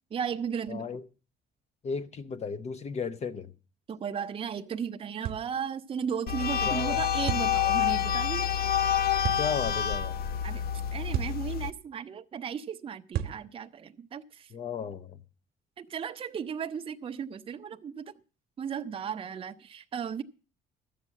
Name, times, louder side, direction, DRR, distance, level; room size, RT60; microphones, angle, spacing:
voice 1, 0.1-1.0 3.9-8.5 10.4-10.6 10.9-14.5 15.8-18.1 18.6-20.2, right 7 dB, 30° right, 0.6 m, -35 dB
voice 2, 0.7-1.0 1.8-3.5 6.6-7.0 9.4-10.2 14.5-15.2, left 6 dB, 40° left, 1.0 m, -34 dB
sound 1, 5.2-5.5 7.3-7.5 9.2-9.5 11.1-11.4 13.1-13.4, right 11 dB, 65° right, 1.0 m, -31 dB
sound 2, 6.3-11.7, left 9 dB, 65° left, 0.7 m, -28 dB
12.5 x 7.5 x 7.3 m
cardioid pair, 110°, 17 cm